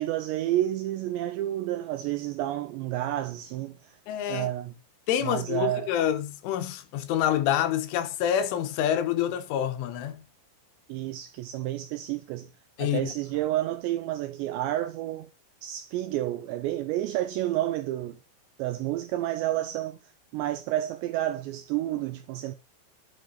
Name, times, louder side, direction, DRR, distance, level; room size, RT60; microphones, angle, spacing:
voice 1, 0.0-4.0 4.3-4.7 5.2-5.9 10.9-12.5 12.8-15.3 15.6-18.2 18.6-20.0 20.3-22.5, right 14 dB, 90° right, 2.5 m, -30 dB
voice 2, 4.1-4.5 5.1-10.2 12.8-13.1, left 10 dB, 75° left, 3.4 m, -27 dB
10.5 x 6.3 x 3.9 m
omnidirectional pair, 5.8 m